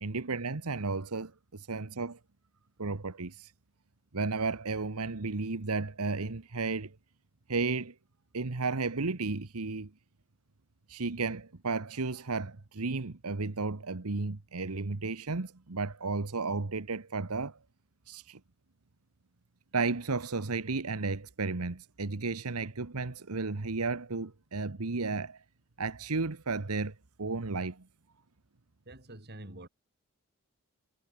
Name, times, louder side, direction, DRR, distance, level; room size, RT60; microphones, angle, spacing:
voice 1, 0.0-2.2 2.8-3.5 4.1-6.9 7.5-7.9 8.3-9.9 10.9-17.6 18.1-18.4 19.7-25.4 25.8-27.8, right 3 dB, 85° right, 1.2 m, -33 dB
voice 2, 28.9-29.7, right 1 dB, 45° right, 3.6 m, -47 dB
head